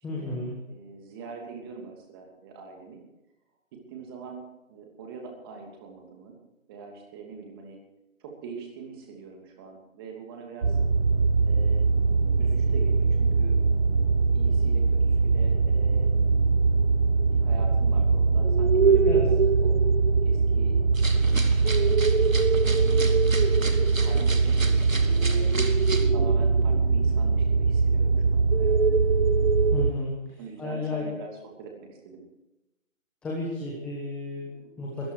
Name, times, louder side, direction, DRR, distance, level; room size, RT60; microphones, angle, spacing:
voice 1, 0.0-0.6 19.1-19.3 29.7-30.1 30.6-31.1 33.2-35.1, left 2 dB, 5° left, -4 dB, 1.2 m, -33 dB
voice 2, 0.7-3.0 3.7-6.3 6.7-7.8 8.2-10.8 11.5-13.6 14.3-16.3 17.3-19.3 19.6-19.8 20.2-21.9 22.6-25.5 26.1-29.0 30.4-32.2, right 5 dB, 20° right, 2 dB, 2.8 m, -43 dB
sound 1, 10.6-29.9, right 4 dB, 45° right, 0.6 m, -22 dB
sound 2, 20.9-26.1, right 3 dB, 75° right, 2.4 m, -36 dB
20.5 x 14.0 x 4.9 m, 0.96 s
figure-of-eight pair, 150°, 40 cm